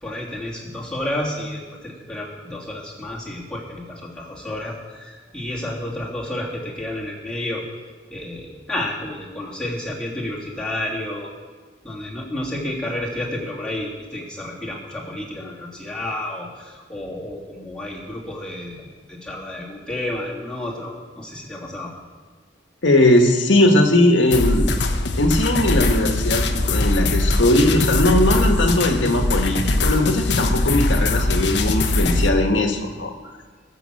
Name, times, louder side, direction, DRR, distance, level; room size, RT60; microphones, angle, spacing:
voice 1, 0.0-7.6 8.1-11.4 11.8-21.9, left 1 dB, 5° left, -5 dB, 3.0 m, -31 dB
voice 2, 22.8-24.7 25.2-33.1, left 1 dB, 85° left, 4 dB, 1.5 m, -19 dB
sound 1, 24.3-32.3, left 2 dB, 65° left, 1.0 m, -21 dB
20.0 x 6.7 x 7.7 m, 1.4 s
head